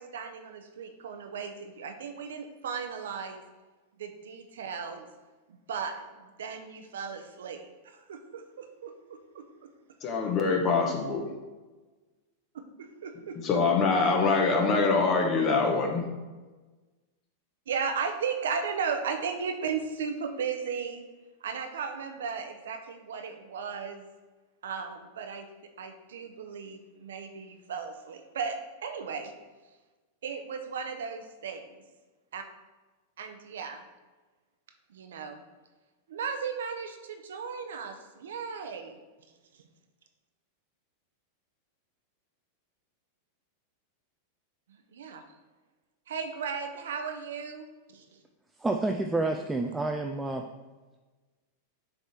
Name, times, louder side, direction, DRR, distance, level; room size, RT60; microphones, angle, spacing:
voice 1, 0.0-3.4 4.0-5.1 5.5-9.5 12.8-13.4 14.0-14.1 17.7-21.0 21.4-24.1 24.6-25.5 25.8-29.3 30.2-31.8 32.3-32.4 33.2-33.8 34.9-35.4 36.1-39.0 39.5-39.6 44.7-45.2 46.1-48.2, right 6 dB, 85° right, 6 dB, 0.7 m, -36 dB
voice 2, 10.0-11.2 13.4-16.0, left 4 dB, 35° left, 2 dB, 1.2 m, -24 dB
voice 3, 48.6-50.4, right 2 dB, 10° right, 3 dB, 0.4 m, -29 dB
6.4 x 3.4 x 4.4 m, 1.3 s
hypercardioid pair, 120°, 0 cm